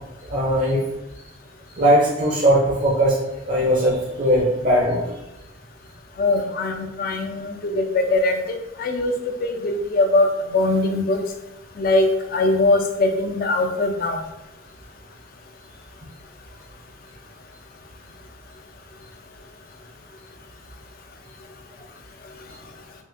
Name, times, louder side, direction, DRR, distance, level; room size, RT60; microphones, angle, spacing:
voice 1, 0.3-0.8 1.7-3.2 3.4-5.0, equal, 40° right, -5 dB, 0.5 m, -19 dB
voice 2, 6.2-8.4 8.8-9.1 9.4-10.3 10.5-11.2 11.8-14.2, left 2 dB, 45° left, 4 dB, 0.4 m, -21 dB
3.7 x 2.4 x 2.5 m, 0.98 s
head